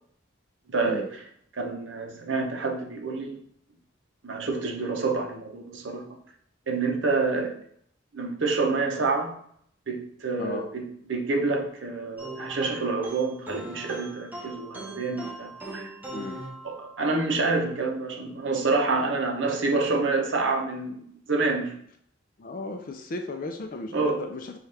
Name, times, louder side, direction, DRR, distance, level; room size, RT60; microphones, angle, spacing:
voice 1, 0.7-1.1 1.5-3.4 4.2-6.0 6.7-7.5 8.1-9.4 9.9-15.9 16.6-21.8 23.9-24.2, right 3 dB, 70° right, 2 dB, 0.7 m, -27 dB
sound 1, 12.2-17.2, right 1 dB, 10° right, 0.7 m, -40 dB
voice 2, 16.1-16.4 19.1-19.2 22.4-24.6, left 2 dB, 45° left, 5 dB, 0.4 m, -35 dB
5.6 x 2.4 x 3.3 m, 0.66 s
head